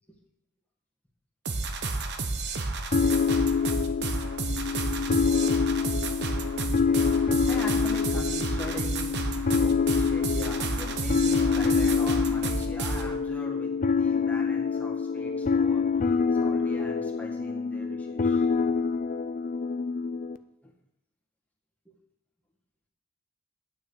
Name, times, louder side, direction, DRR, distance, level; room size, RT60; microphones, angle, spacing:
sound 1, 1.5-13.2, right 3 dB, 55° right, 1.0 m, -31 dB
sound 2, 2.9-20.4, left 5 dB, 40° left, 0.5 m, -26 dB
voice 1, 7.2-9.1 9.5-15.8 16.4-18.5 20.6-20.7 21.9-22.0, left 1 dB, 5° left, -2 dB, 1.7 m, -41 dB
9.4 x 5.9 x 7.2 m, 0.79 s
head